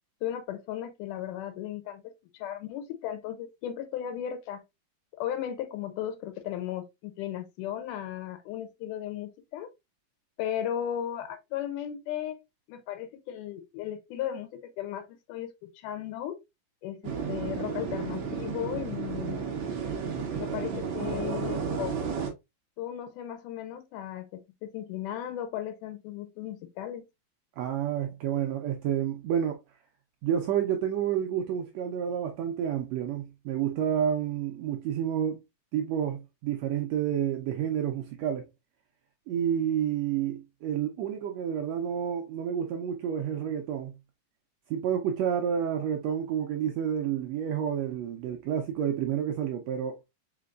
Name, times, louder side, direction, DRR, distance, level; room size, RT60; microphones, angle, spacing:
voice 1, 0.2-2.0 2.3-4.6 5.2-9.7 10.4-12.4 12.7-16.4 16.8-19.4 20.4-22.0 22.8-27.1, left 11 dB, 90° left, 2.3 m, -36 dB
sound 1, 17.0-22.3, right 6 dB, 65° right, 1.2 m, -32 dB
voice 2, 27.6-29.6 30.2-35.4 35.7-38.5 39.3-43.9 44.7-50.0, right 9 dB, 80° right, 1.5 m, -29 dB
5.1 x 3.8 x 2.4 m
omnidirectional pair, 3.7 m